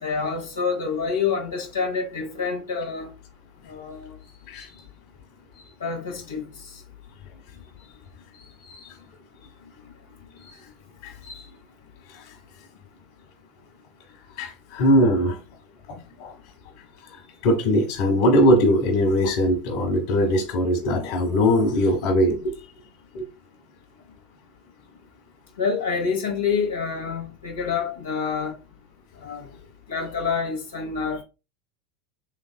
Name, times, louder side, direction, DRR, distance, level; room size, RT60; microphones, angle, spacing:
voice 1, 0.0-3.1 3.7-4.1 5.8-6.4 25.6-28.5 29.2-29.5 29.9-31.2, left 5 dB, 85° left, 0.9 m, -27 dB
voice 2, 8.4-8.9 10.4-10.6 11.0-11.4 12.1-12.3 14.4-15.4 15.9-16.3 17.1-22.5 23.1-23.2, equal, 60° left, 1.2 m, -21 dB
3.4 x 3.3 x 2.2 m
hypercardioid pair, 85°, 0 cm